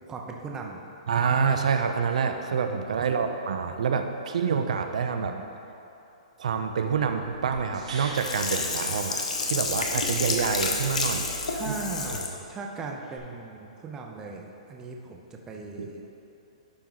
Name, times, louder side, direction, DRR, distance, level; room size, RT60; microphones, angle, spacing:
voice 1, 0.0-0.8 5.2-5.5 11.5-16.0, right 4 dB, 15° right, 1 dB, 0.6 m, -38 dB
voice 2, 1.1-5.4 6.4-11.2 11.7-11.8 15.8-15.9, right 6 dB, 75° right, 7 dB, 0.6 m, -27 dB
Microwave oven, 7.0-12.2, right 6 dB, 15° left, 1.4 m, -47 dB
sound 1, 7.5-9.8 13.2-13.3, right 2 dB, 90° right, 1.9 m, -41 dB
Sink (filling or washing), 8.2-12.4 12.8-12.9, left 4 dB, 85° left, 1.0 m, -29 dB
11.5 x 4.5 x 3.9 m, 3.0 s
hypercardioid pair, 155°, 4 cm